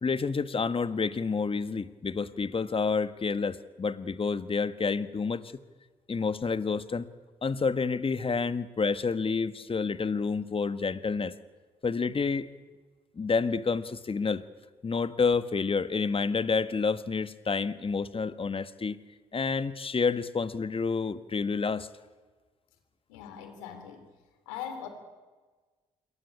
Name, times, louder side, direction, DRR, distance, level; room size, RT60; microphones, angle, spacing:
voice 1, 0.0-5.5 6.1-7.1 7.4-11.4 11.8-12.5 13.1-14.4 14.8-19.0 19.3-21.9, left 4 dB, 35° left, 1.6 m, -29 dB
voice 2, 23.1-24.1 24.4-24.9, left 8 dB, 80° left, 3.4 m, -40 dB
27.5 x 23.0 x 8.7 m
hypercardioid pair, 45°, 16 cm